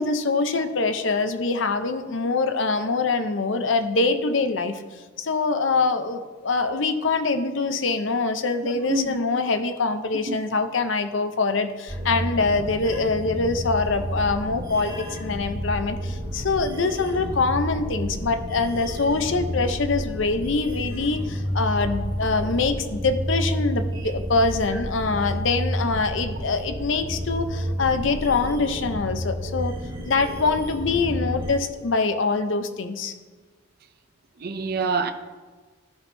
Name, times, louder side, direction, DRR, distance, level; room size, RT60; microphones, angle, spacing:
voice 1, 0.0-4.8 5.2-29.7 30.0-33.1, left 3 dB, 70° left, 0.7 m, -24 dB
voice 2, 8.6-9.2 10.3-10.4 34.4-35.1, right 3 dB, 50° right, 0.5 m, -26 dB
sound 1, 11.9-31.5, equal, 20° right, 1.7 m, -30 dB
13.5 x 5.5 x 2.7 m
head